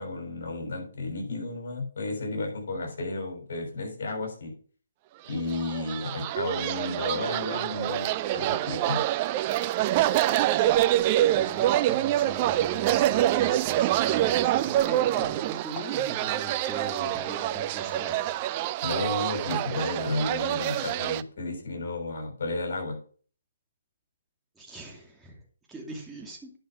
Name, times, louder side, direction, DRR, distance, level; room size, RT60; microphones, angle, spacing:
voice 1, 0.0-4.5 5.3-9.0 18.8-23.0, left 2 dB, 55° left, 2 dB, 6.3 m, -32 dB
sound 1, 5.4-21.2, right 14 dB, 30° right, 0.4 m, -26 dB
Walk footsteps, 10.6-16.0, left 2 dB, 20° left, 4.4 m, -49 dB
voice 2, 11.3-18.3 24.6-25.4 25.7-26.5, right 1 dB, 5° right, 0 dB, 2.5 m, -41 dB
10.5 x 6.1 x 5.1 m, 0.42 s
hypercardioid pair, 150°, 0 cm